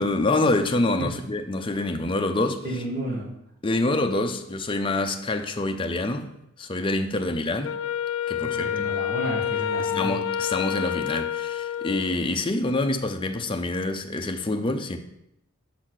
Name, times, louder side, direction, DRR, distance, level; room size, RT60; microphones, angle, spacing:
voice 1, 0.0-2.6 3.6-6.3 6.6-7.8 8.3-8.7 9.8-15.0, left 2 dB, 25° left, 0.5 m, -26 dB
voice 2, 2.6-3.3 8.3-10.2, right 1 dB, 45° right, 1.4 m, -32 dB
Wind instrument woodwind instrument, 7.6-12.3, left 9 dB, 70° left, 0.3 m, -28 dB
6.4 x 4.1 x 6.2 m
head